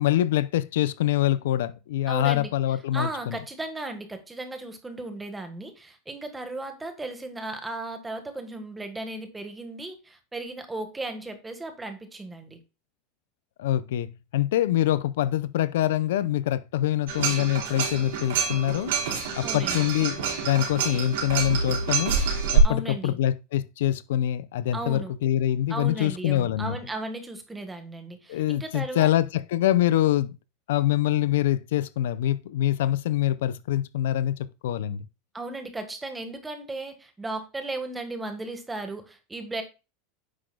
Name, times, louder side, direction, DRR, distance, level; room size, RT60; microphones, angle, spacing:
voice 1, 0.0-3.4 13.6-18.9 19.4-22.1 22.5-26.8 28.3-30.3 30.7-35.1, left 12 dB, 85° left, 0.5 m, -25 dB
voice 2, 2.1-2.5 2.9-12.6 19.4-19.9 22.6-23.2 24.7-25.1 25.7-29.1 35.3-39.6, right 2 dB, 10° right, 1.5 m, -36 dB
sound 1, 17.1-22.6, right 6 dB, 85° right, 4.0 m, -26 dB
9.6 x 6.0 x 2.3 m
supercardioid pair, 145°, 0 cm